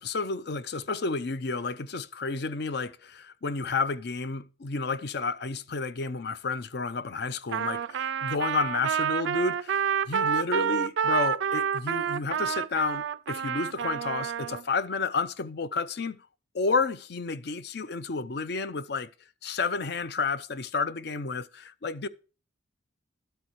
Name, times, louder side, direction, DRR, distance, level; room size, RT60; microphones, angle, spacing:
voice 1, 0.0-16.2 16.5-19.1 19.4-22.1, left 4 dB, 60° left, 0.6 m, -31 dB
Trumpet, 7.5-14.6, right 8 dB, 85° right, 0.4 m, -28 dB
12.0 x 8.2 x 3.0 m
head